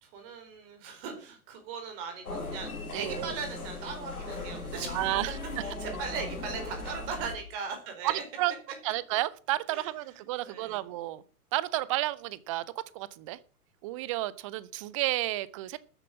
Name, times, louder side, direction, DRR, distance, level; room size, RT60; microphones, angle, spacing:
voice 1, 0.0-5.2 5.6-8.2 9.7-10.8, right 5 dB, 40° right, 5 dB, 4.5 m, -39 dB
sound 1, 2.2-7.3, left 2 dB, 70° left, 5.6 m, -38 dB
voice 2, 2.9-3.3 4.9-5.3 8.0-8.5 8.8-11.2 11.5-12.6 12.9-13.4 13.8-15.8, right 16 dB, 20° right, 19 dB, 0.6 m, -31 dB
13.5 x 8.5 x 7.1 m, 0.39 s
figure-of-eight pair, 105°, 45 cm